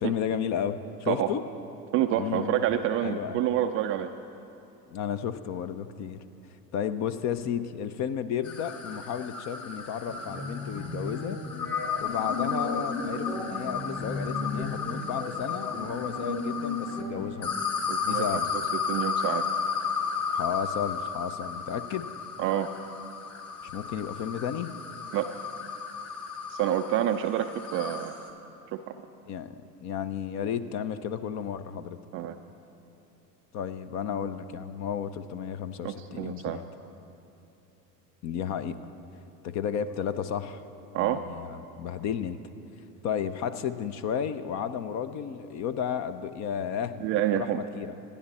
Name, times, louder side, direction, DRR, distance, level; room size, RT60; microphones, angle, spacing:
voice 1, 0.0-1.4 2.1-2.6 3.0-3.4 4.9-6.2 6.7-11.4 12.0-17.6 18.0-18.7 20.3-22.1 23.6-24.7 29.3-32.0 33.5-36.7 38.2-38.8 39.4-40.6 41.0-42.4 43.0-47.1 47.3-47.9, left 8 dB, 35° left, 12 dB, 0.7 m, -33 dB
voice 2, 1.9-4.1 17.9-18.3 18.5-18.6 18.9-19.4 22.4-22.7 25.1-25.3 26.5-28.1 28.7-28.9 32.1-32.4 35.8-36.6 40.9-41.2 47.0-47.6, right 11 dB, 30° right, 7 dB, 0.4 m, -27 dB
sound 1, 8.4-17.0 17.4-28.3, left 6 dB, 50° left, 2.3 m, -34 dB
sound 2, 10.1-17.2, left 2 dB, 85° left, 2.6 m, -35 dB
27.0 x 10.5 x 4.2 m, 2.8 s
figure-of-eight pair, 75°, 50 cm